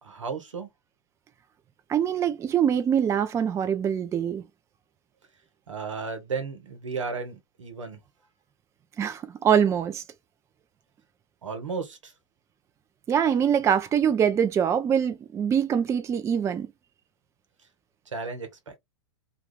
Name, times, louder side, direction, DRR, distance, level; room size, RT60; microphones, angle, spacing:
voice 1, 0.0-0.7 5.7-8.0 11.4-12.1 18.1-18.8, right 4 dB, 90° right, 0.9 m, -34 dB
voice 2, 1.9-4.4 9.0-10.0 13.1-16.7, right 8 dB, 20° right, 0.4 m, -24 dB
2.3 x 2.3 x 3.1 m
hypercardioid pair, 105°, 16 cm